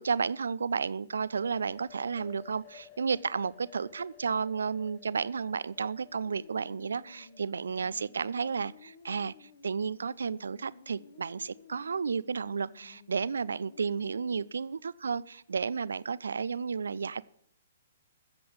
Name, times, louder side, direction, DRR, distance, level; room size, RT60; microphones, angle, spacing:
voice 1, 0.0-17.2, right 5 dB, 65° right, 0.5 m, -32 dB
sound 1, 1.1-8.8, left 12 dB, 35° left, 0.6 m, -56 dB
sound 2, 6.0-14.5, left 5 dB, 60° left, 1.3 m, -55 dB
14.5 x 7.7 x 6.8 m
figure-of-eight pair, 120°, 0 cm